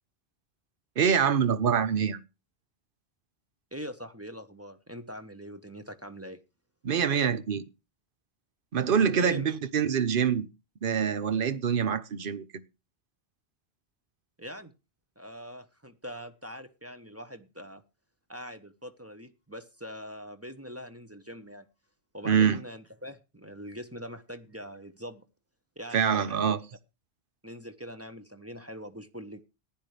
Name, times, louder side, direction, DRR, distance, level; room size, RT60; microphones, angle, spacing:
voice 1, 1.0-2.2 6.8-7.6 8.7-10.5 10.8-12.5 22.2-22.6 25.9-26.6, right 7 dB, 55° right, 1.0 m, -25 dB
voice 2, 3.7-6.4 9.1-9.5 14.4-14.7 15.2-17.8 18.3-21.7 22.1-25.2 25.8-26.4 27.4-29.4, equal, 15° right, 0.9 m, -43 dB
14.5 x 10.5 x 3.3 m
omnidirectional pair, 1.1 m